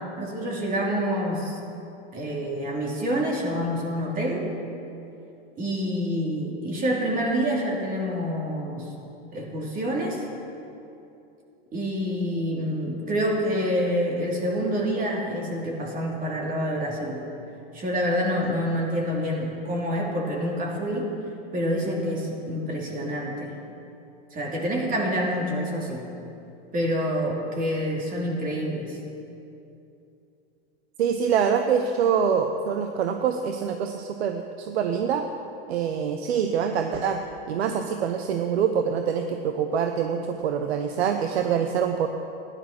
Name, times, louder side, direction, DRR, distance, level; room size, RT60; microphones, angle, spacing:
voice 1, 0.2-1.6 2.1-4.5 5.6-8.9 9.3-10.2 11.7-17.2 17.7-21.1 21.5-23.5 24.3-26.1 26.7-29.0, equal, 25° right, -2 dB, 2.9 m, -27 dB
voice 2, 31.0-35.2 35.7-37.2 37.5-42.1, right 7 dB, 85° right, 6 dB, 0.9 m, -25 dB
14.0 x 11.0 x 6.0 m, 2.8 s
supercardioid pair, 120°, 31 cm